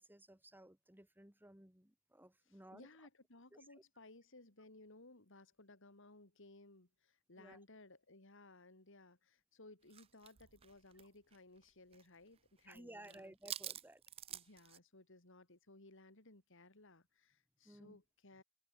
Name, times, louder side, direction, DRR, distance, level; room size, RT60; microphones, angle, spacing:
voice 1, 0.0-3.1 3.5-3.8 7.4-7.6 12.6-14.0 17.6-18.0, right 1 dB, 10° right, 2.9 m, -58 dB
voice 2, 2.7-13.3 14.3-18.4, left 2 dB, 65° left, 3.5 m, -60 dB
sound 1, 9.9-12.1 12.3-12.8 13.0-14.8, right 11 dB, 30° right, 0.3 m, -49 dB
open air
head